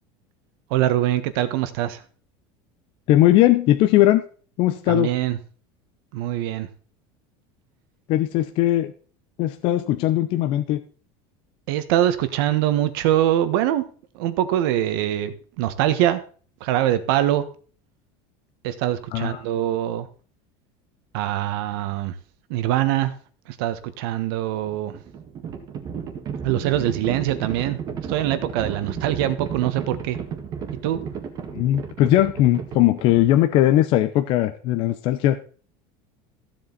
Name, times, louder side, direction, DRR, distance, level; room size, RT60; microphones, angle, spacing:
voice 1, 0.7-2.0 4.9-5.4 6.1-6.7 11.7-13.8 14.1-16.2 16.6-17.4 18.6-20.1 21.1-22.1 22.5-23.1 23.6-24.9 26.4-27.8 28.1-30.2 30.8-31.0, right 12 dB, 65° right, 11 dB, 1.5 m, -23 dB
voice 2, 3.1-4.2 4.6-5.1 8.1-8.9 9.4-10.8 19.1-19.4 31.5-35.4, left 14 dB, 40° left, 9 dB, 0.7 m, -19 dB
Livestock farm animals working animals, 24.7-33.6, right 7 dB, 30° right, 1.7 m, -33 dB
15.0 x 7.7 x 4.2 m, 0.41 s
cardioid pair, 175°, 13 cm